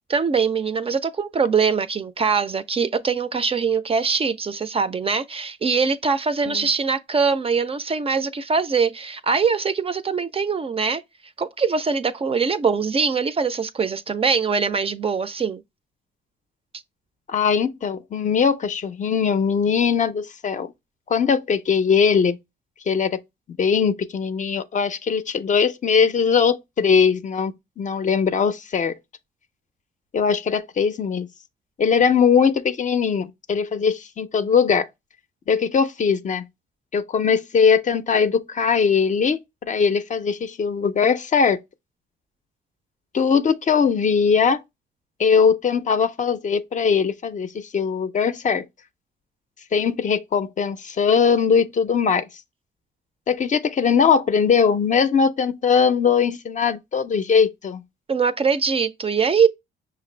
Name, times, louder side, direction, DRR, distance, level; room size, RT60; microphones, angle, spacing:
voice 1, 0.1-11.0 11.4-15.6 58.1-59.5, right 5 dB, 30° right, 0.4 m, -22 dB
voice 2, 17.3-20.7 21.1-22.4 22.9-23.2 23.6-29.0 30.1-31.3 31.8-34.9 35.5-36.4 36.9-39.4 39.7-41.6 43.1-44.6 45.2-48.7 49.7-52.3 53.3-57.8, left 6 dB, 40° left, 0.5 m, -20 dB
5.7 x 2.5 x 3.1 m
cardioid pair, 90°, 20 cm